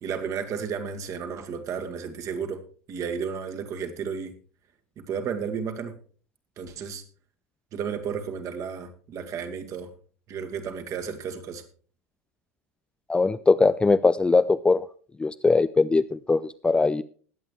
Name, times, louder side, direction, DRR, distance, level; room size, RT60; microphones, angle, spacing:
voice 1, 0.0-2.6 2.9-4.4 5.0-5.9 6.6-7.0 7.7-9.9 10.3-11.6, right 6 dB, 40° right, 6 dB, 1.9 m, -33 dB
voice 2, 13.1-14.9 15.2-17.0, left 3 dB, 10° left, 13 dB, 0.4 m, -21 dB
20.5 x 8.5 x 3.2 m, 0.42 s
figure-of-eight pair, 75°, 8 cm